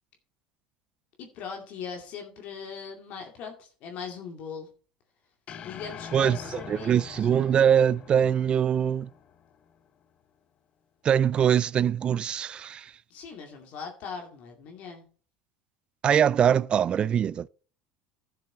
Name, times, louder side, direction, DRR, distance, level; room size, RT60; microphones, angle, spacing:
voice 1, 1.2-4.7 5.6-7.0 13.1-15.0, left 6 dB, 60° left, 2.3 m, -40 dB
sound 1, 5.5-9.9, left 8 dB, 40° left, 1.0 m, -44 dB
voice 2, 6.1-9.1 11.0-12.9 16.0-17.5, right 8 dB, 35° right, 0.4 m, -23 dB
12.0 x 6.9 x 4.4 m
supercardioid pair, 105°, 3 cm